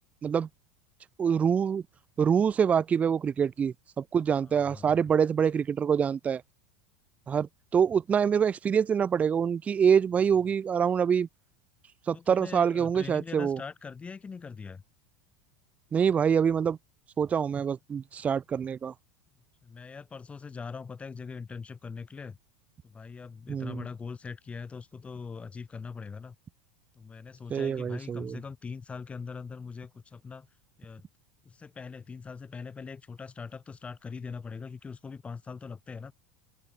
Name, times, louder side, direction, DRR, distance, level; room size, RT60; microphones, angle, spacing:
voice 1, 1.2-1.8 2.2-6.4 7.3-11.3 12.1-13.6 15.9-16.8 17.2-18.9 23.5-23.8 27.5-28.4, right 7 dB, 20° right, 0.4 m, -25 dB
voice 2, 4.5-4.9 12.1-14.8 19.6-22.4 22.8-26.4 27.0-30.5 30.8-31.0 31.4-36.1, left 5 dB, 20° left, 2.4 m, -42 dB
open air
hypercardioid pair, 105°, 6 cm